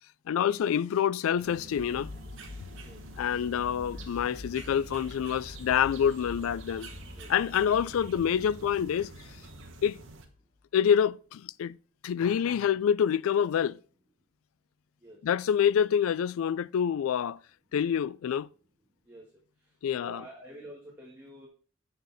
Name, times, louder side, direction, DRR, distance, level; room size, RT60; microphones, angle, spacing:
voice 1, 0.3-2.1 3.2-6.9 7.3-9.1 9.8-10.0 10.7-11.8 12.0-13.8 15.2-17.4 17.7-18.5 19.8-20.2, left 8 dB, 85° left, 0.3 m, -27 dB
sound 1, 1.4-10.3, right 2 dB, 70° right, 1.1 m, -47 dB
sound 2, 1.8-10.4, left 3 dB, 35° left, 0.7 m, -47 dB
voice 2, 19.9-21.5, equal, 10° right, 1.6 m, -47 dB
6.7 x 6.5 x 4.0 m
head